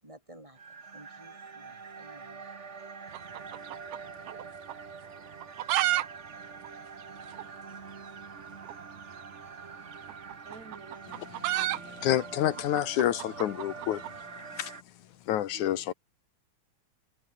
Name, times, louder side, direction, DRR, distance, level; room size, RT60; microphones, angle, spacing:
voice 1, 0.0-2.5, right 1 dB, 10° right, 7.3 m, -54 dB
sound 1, 0.5-14.8, right 5 dB, 30° right, 1.4 m, -45 dB
sound 2, 3.1-4.4 4.7-4.8 5.3-6.1 6.3-6.4 6.6-6.7 7.3-7.4 8.6-8.8 9.9-14.2, right 15 dB, 90° right, 2.3 m, -31 dB
voice 2, 10.4-12.3 15.5-15.9, right 4 dB, 60° right, 6.5 m, -51 dB
voice 3, 12.0-14.0 14.6-14.7 15.3-15.9, left 12 dB, 80° left, 2.6 m, -28 dB
omnidirectional pair, 3.5 m